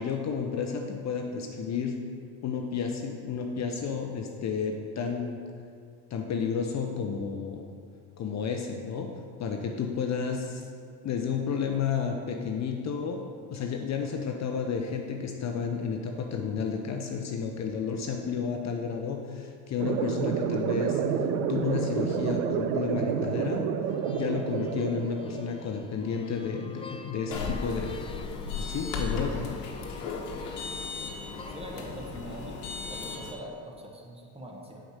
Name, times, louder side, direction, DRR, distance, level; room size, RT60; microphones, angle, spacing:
voice 1, 0.0-2.0 2.4-5.4 6.1-7.7 8.2-10.6 11.0-13.3 13.5-23.7 24.1-28.0 28.6-29.5, left 6 dB, 40° left, 3 dB, 0.7 m, -31 dB
sound 1, 19.8-25.8, right 7 dB, 85° right, 0.6 m, -29 dB
sound 2, 23.9-31.9, left 4 dB, 15° left, 0.3 m, -46 dB
sound 3, 27.3-33.3, left 4 dB, 85° left, 1.2 m, -36 dB
voice 2, 31.5-32.6 32.9-34.8, equal, 15° right, -1 dB, 1.4 m, -42 dB
6.2 x 5.0 x 6.6 m, 2.2 s
supercardioid pair, 95°, 43 cm